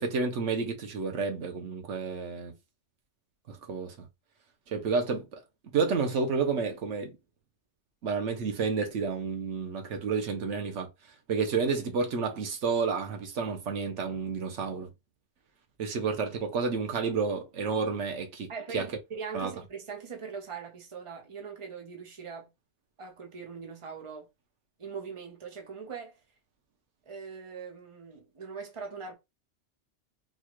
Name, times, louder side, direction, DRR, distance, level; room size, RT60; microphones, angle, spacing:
voice 1, 0.0-2.5 3.5-4.1 4.7-5.4 5.7-7.1 8.0-10.9 11.3-14.9 15.8-18.9 19.3-19.5, right 5 dB, 80° right, 1.1 m, -30 dB
voice 2, 18.5-22.5 23.0-24.3 24.8-26.2 27.1-29.1, right 5 dB, 30° right, 0.9 m, -41 dB
4.0 x 2.4 x 3.0 m
omnidirectional pair, 1.2 m